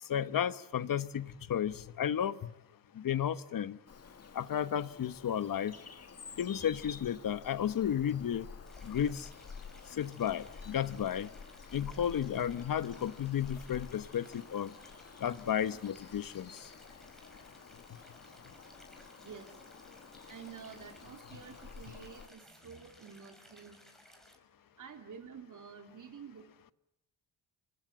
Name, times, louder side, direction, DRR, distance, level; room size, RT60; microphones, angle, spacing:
voice 1, 0.1-2.4 2.9-3.8 4.3-5.8 6.4-8.5 8.8-9.3 9.9-11.3 11.7-14.7 15.2-16.5, left 9 dB, 50° left, 14 dB, 1.2 m, -33 dB
Bird vocalization bird call bird song, 3.9-22.3, left 5 dB, 35° left, 2.1 m, -50 dB
Stream, 8.7-24.4, equal, ahead, 5.6 m, -60 dB
voice 2, 19.2-19.5 20.3-23.8 24.8-26.7, right 6 dB, 45° right, 4 dB, 3.3 m, -50 dB
28.5 x 25.5 x 7.6 m, 0.82 s
cardioid pair, 115°, 42 cm